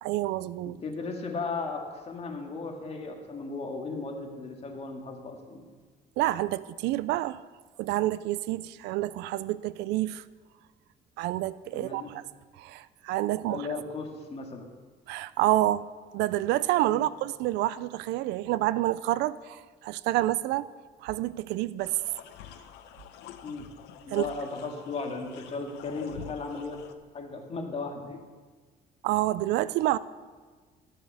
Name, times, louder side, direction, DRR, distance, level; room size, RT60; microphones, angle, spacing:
voice 1, 0.0-0.8 6.2-7.4 7.8-10.2 11.2-12.2 12.6-13.7 15.1-15.9 16.1-20.7 21.0-22.0 24.1-24.2 29.0-30.0, right 16 dB, 85° right, 0.4 m, -28 dB
voice 2, 0.6-5.7 11.7-12.1 13.5-14.7 16.9-17.1 23.4-23.7 24.1-26.8 27.1-28.2, left 4 dB, 40° left, 2.0 m, -36 dB
sound 1, 21.8-26.9, left 9 dB, 90° left, 0.8 m, -47 dB
14.0 x 6.6 x 7.0 m
cardioid pair, 110°, 17 cm